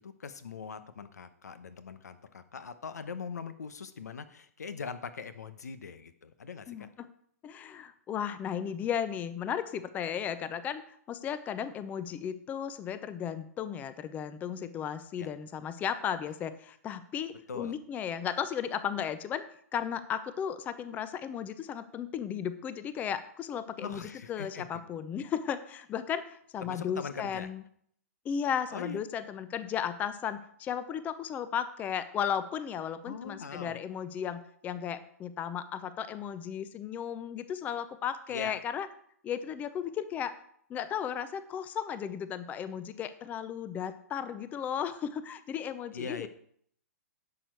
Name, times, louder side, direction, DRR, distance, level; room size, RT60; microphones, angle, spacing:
voice 1, 0.0-6.9 15.2-15.3 17.5-17.8 23.8-24.8 26.6-27.5 28.7-29.0 33.0-33.8 38.3-38.6 45.9-46.3, left 5 dB, 85° left, 12 dB, 0.9 m, -41 dB
voice 2, 7.4-10.8 11.1-19.4 19.7-27.6 28.2-38.9 39.2-40.3 40.7-46.3, left 8 dB, 20° left, 13 dB, 0.5 m, -35 dB
11.0 x 6.7 x 4.6 m, 0.65 s
hypercardioid pair, 135°, 9 cm